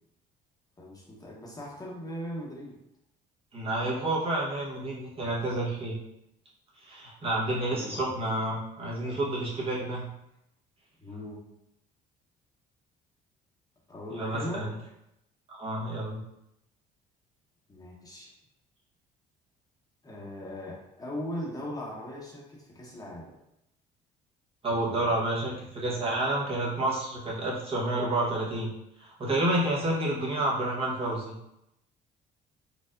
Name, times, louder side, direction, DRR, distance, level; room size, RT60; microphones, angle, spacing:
voice 1, 0.8-2.8 7.5-8.2 11.0-11.4 13.9-14.7 17.7-18.3 20.0-23.4 24.9-25.1, equal, 20° left, -4 dB, 1.0 m, -39 dB
voice 2, 3.5-6.0 6.8-10.1 14.2-14.7 15.5-16.2 24.6-28.7 29.0-31.3, right 1 dB, 35° right, -6 dB, 1.1 m, -29 dB
4.3 x 2.6 x 2.5 m, 0.85 s
cardioid pair, 110°, 17 cm